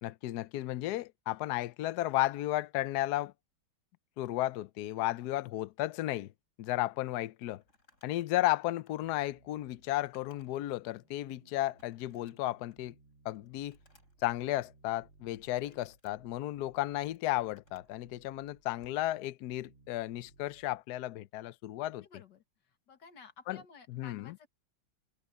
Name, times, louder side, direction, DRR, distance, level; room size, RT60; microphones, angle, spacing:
voice 1, 0.0-3.3 4.2-6.3 6.6-7.6 8.0-12.9 13.2-13.8 14.2-22.1 23.5-23.6 23.9-24.4, left 15 dB, 85° left, 0.8 m, -34 dB
Crumpling crinkling, 7.6-10.7 11.1-11.2 11.8-12.9 13.3-14.3 15.2-16.1 16.7-18.0 18.7-19.0, left 2 dB, 30° left, 7.2 m, -68 dB
sound 1, 9.0-20.8, right 3 dB, 60° right, 2.8 m, -63 dB
voice 2, 21.8-22.4 22.9-24.5, left 5 dB, 55° left, 2.3 m, -55 dB
omnidirectional pair, 2.4 m